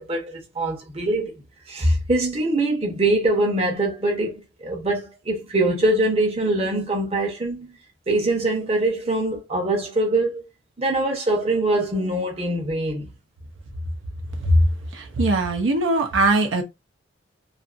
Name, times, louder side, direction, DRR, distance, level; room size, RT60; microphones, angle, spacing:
voice 1, 0.0-1.4 1.7-7.8 8.1-10.4 10.8-13.1, right 2 dB, 30° right, 0.8 m, -23 dB
voice 2, 14.9-16.6, right 1 dB, 80° right, 0.6 m, -20 dB
2.5 x 2.5 x 2.4 m
head